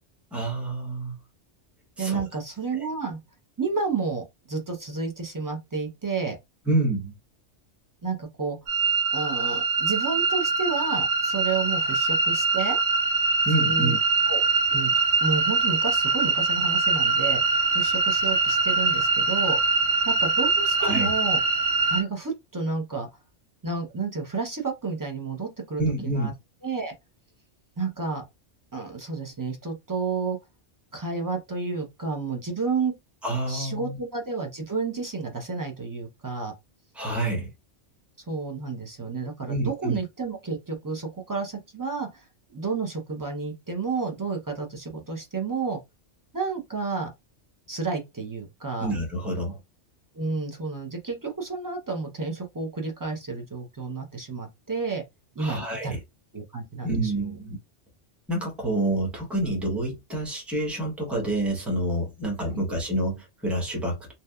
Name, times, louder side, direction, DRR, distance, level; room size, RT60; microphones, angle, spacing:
voice 1, 0.3-1.2 2.0-2.2 2.7-2.8 6.7-7.1 13.4-14.0 20.8-21.1 25.8-26.3 33.2-34.0 36.9-37.5 39.5-40.0 48.8-49.6 55.4-56.0 56.8-57.6 58.3-64.1, right 1 dB, ahead, 0.8 m, -28 dB
voice 2, 2.0-3.2 3.6-6.4 8.0-8.6 9.1-12.8 13.5-14.0 14.3-14.4 14.7-14.9 15.2-17.4 17.7-19.6 20.0-21.4 21.9-23.1 23.6-26.3 26.6-26.9 27.8-28.2 28.7-30.4 30.9-32.9 33.5-36.5 38.3-42.1 42.5-45.8 46.3-47.1 47.7-48.9 50.2-55.0 55.4-55.9 56.3-57.2 62.5-62.6, right 4 dB, 30° right, 0.4 m, -31 dB
sound 1, 8.7-22.0, right 4 dB, 70° right, 0.8 m, -23 dB
2.8 x 2.1 x 2.3 m
omnidirectional pair, 1.2 m